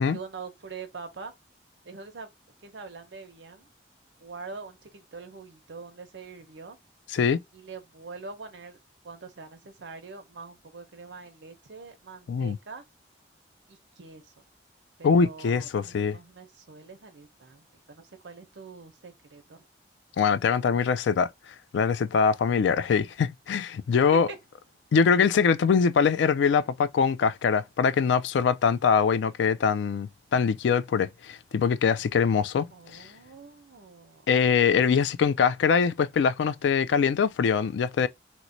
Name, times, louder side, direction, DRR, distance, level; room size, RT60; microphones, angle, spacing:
voice 1, 0.0-1.3 1.8-2.3 2.6-3.7 4.2-6.8 7.5-8.8 9.0-12.8 13.7-14.3 15.0-19.7 24.1-24.4 32.7-34.3, right 4 dB, 75° right, 0.7 m, -44 dB
voice 2, 15.0-16.2 20.2-21.3 21.7-24.3 24.9-32.7 32.9-33.1 34.3-38.1, left 6 dB, 75° left, 0.3 m, -23 dB
3.0 x 2.1 x 3.8 m
head